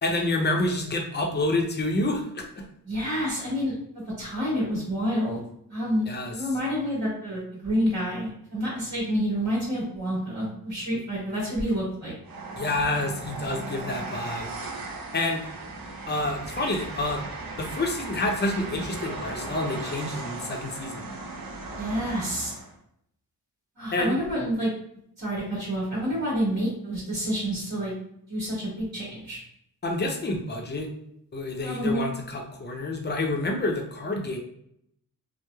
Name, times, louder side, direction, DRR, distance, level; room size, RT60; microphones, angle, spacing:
voice 1, 0.0-2.6 6.1-6.3 12.6-14.5 15.1-15.5 16.1-17.2 17.6-21.0 23.9-24.2 29.8-30.9 31.3-34.4, left 2 dB, 30° left, 2 dB, 0.5 m, -28 dB
voice 2, 2.8-3.7 4.2-5.4 5.7-12.1 21.7-22.5 23.8-24.7 25.2-27.9 28.3-29.4 31.6-32.0, equal, 50° right, -7 dB, 1.3 m, -28 dB
Train, 12.2-22.7, right 2 dB, 65° right, 0.7 m, -37 dB
3.0 x 2.0 x 2.2 m, 0.72 s
wide cardioid pair, 95°, 36 cm